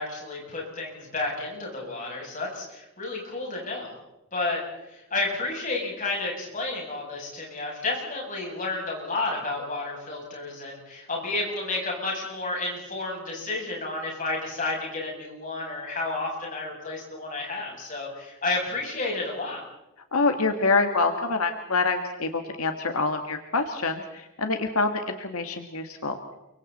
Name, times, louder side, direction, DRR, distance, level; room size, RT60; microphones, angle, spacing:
voice 1, 0.0-4.0 4.3-19.6, left 2 dB, 35° left, -2 dB, 7.9 m, -31 dB
voice 2, 20.1-26.2, left 3 dB, 85° left, 6 dB, 1.7 m, -26 dB
30.0 x 24.5 x 4.2 m, 0.93 s
head